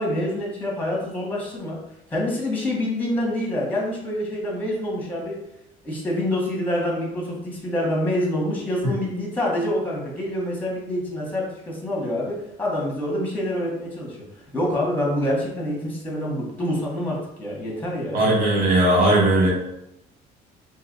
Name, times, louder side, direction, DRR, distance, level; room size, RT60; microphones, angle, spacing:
voice 1, 0.0-1.8 2.1-5.4 5.8-14.2 14.5-18.2, left 1 dB, 10° left, -2 dB, 1.0 m, -26 dB
voice 2, 18.1-19.5, right 1 dB, 60° right, -6 dB, 1.2 m, -18 dB
2.7 x 2.4 x 3.9 m, 0.84 s
cardioid pair, 110°, 17 cm